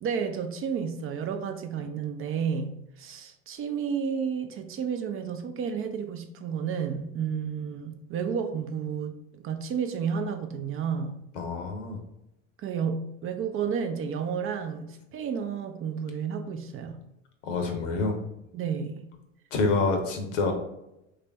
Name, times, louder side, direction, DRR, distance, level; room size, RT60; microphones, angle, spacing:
voice 1, 0.0-2.7 3.0-11.2 12.6-17.0 18.5-19.1, right 6 dB, 35° right, 7 dB, 0.5 m, -31 dB
voice 2, 11.3-12.0 17.4-18.2 19.5-20.5, left 3 dB, 80° left, 4 dB, 0.8 m, -27 dB
3.3 x 2.5 x 3.3 m, 0.87 s
hypercardioid pair, 75°, 37 cm